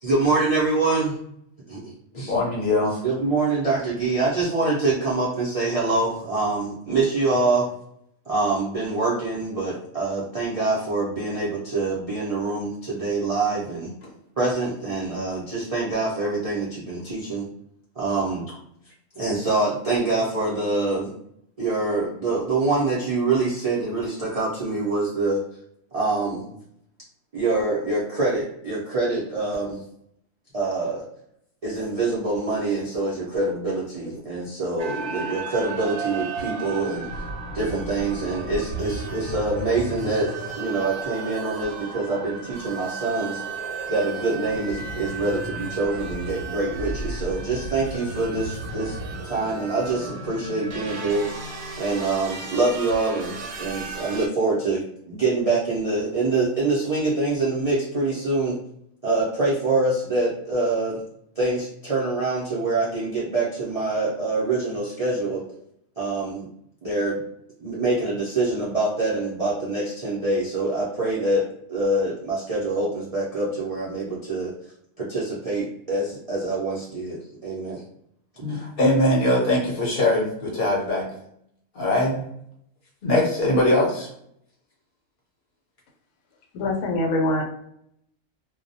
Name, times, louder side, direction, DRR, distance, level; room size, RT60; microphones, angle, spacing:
voice 1, 0.0-1.2 1.7-2.3 3.0-7.7 8.3-13.9 14.4-17.5 18.0-18.5 19.2-21.1 21.6-25.4 25.9-26.6 27.3-29.8 30.5-31.0 31.6-37.1 37.5-43.4 43.9-49.0 49.2-51.3 51.8-58.6 59.0-61.0 61.4-65.4 66.0-66.5 66.8-67.2 67.6-74.5 75.0-77.8 78.4-78.6, right 3 dB, 60° right, -7 dB, 0.3 m, -25 dB
voice 2, 2.1-3.0 78.5-81.1 81.7-82.2 83.0-84.1, left 1 dB, 45° left, -3 dB, 0.8 m, -21 dB
sound 1, 34.8-54.3, right 3 dB, 90° right, 1.0 m, -34 dB
voice 3, 86.5-87.4, left 1 dB, 75° left, 1 dB, 1.0 m, -23 dB
2.2 x 2.1 x 2.6 m, 0.72 s
omnidirectional pair, 1.4 m